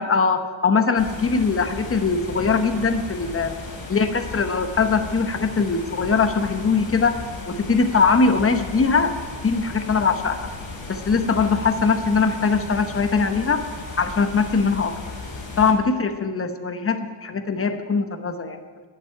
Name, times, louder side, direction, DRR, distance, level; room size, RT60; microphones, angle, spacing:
voice 1, 0.0-3.6 3.9-7.2 7.5-9.1 9.4-10.5 10.9-13.6 14.0-14.9 15.6-18.6, left 4 dB, 30° left, 7 dB, 0.9 m, -21 dB
sound 1, 1.0-15.7, left 3 dB, 45° left, 3.2 m, -36 dB
13.0 x 7.5 x 9.0 m, 1.5 s
wide cardioid pair, 175°, 48 cm